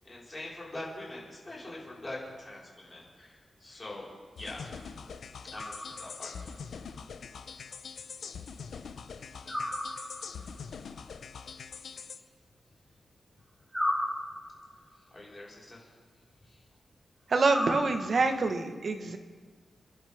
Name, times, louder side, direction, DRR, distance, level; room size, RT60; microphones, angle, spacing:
voice 1, 0.0-4.1 4.3-4.8 5.5-6.5 9.2-9.3 15.1-15.9 16.4-16.6, left 2 dB, 20° left, -6 dB, 5.0 m, -43 dB
sound 1, 4.4-12.2, left 6 dB, 80° left, 0.8 m, -43 dB
sound 2, 5.5-6.4 9.5-10.5 13.7-14.8 17.4-18.4, left 1 dB, ahead, 5.8 m, -34 dB
voice 2, 17.3-19.2, right 3 dB, 50° right, 5 dB, 1.5 m, -26 dB
30.0 x 11.0 x 3.7 m, 1.4 s
wide cardioid pair, 125°, 0 cm